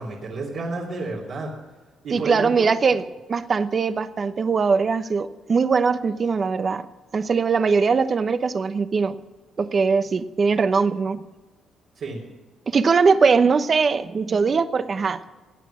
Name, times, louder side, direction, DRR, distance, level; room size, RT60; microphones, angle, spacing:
voice 1, 0.0-1.5 2.0-2.7 11.9-12.2, right 3 dB, 65° right, -4 dB, 3.3 m, -30 dB
voice 2, 2.1-6.9 7.1-9.1 9.6-11.2 12.7-15.2, right 5 dB, 40° right, 13 dB, 0.9 m, -21 dB
16.5 x 8.6 x 8.6 m, 1.2 s
cardioid pair, 90°, 0 cm